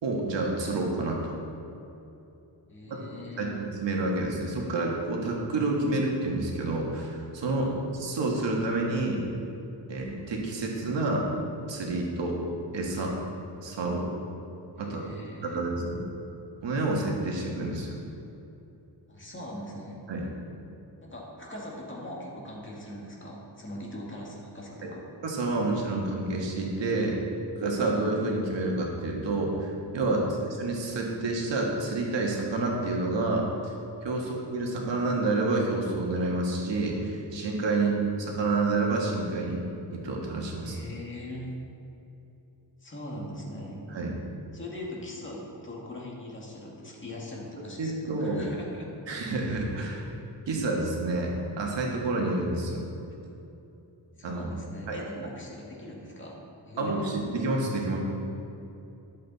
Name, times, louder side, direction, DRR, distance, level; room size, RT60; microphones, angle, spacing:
voice 1, 0.0-1.2 2.9-3.0 3.4-9.2 9.9-11.3 11.7-12.4 12.7-13.2 13.6-14.1 14.8-15.0 15.4-16.0 16.6-18.0 20.1-20.2 24.8-24.9 25.2-27.2 27.6-30.3 30.6-33.7 34.0-39.6 39.9-40.8 43.9-44.2 47.8-48.5 49.1-50.0 50.5-52.8 54.2-54.5 54.9-55.0 56.8-58.0, right 2 dB, 85° right, -1 dB, 1.6 m, -29 dB
voice 2, 2.7-3.5 7.5-7.7 14.8-15.6 19.1-20.0 21.0-25.0 30.1-30.4 34.1-34.3 37.7-37.9 40.6-41.6 42.8-43.8 44.5-48.9 54.2-57.1, left 1 dB, 30° left, -3 dB, 2.0 m, -41 dB
11.0 x 7.5 x 4.1 m, 2.9 s
wide cardioid pair, 130°, 42 cm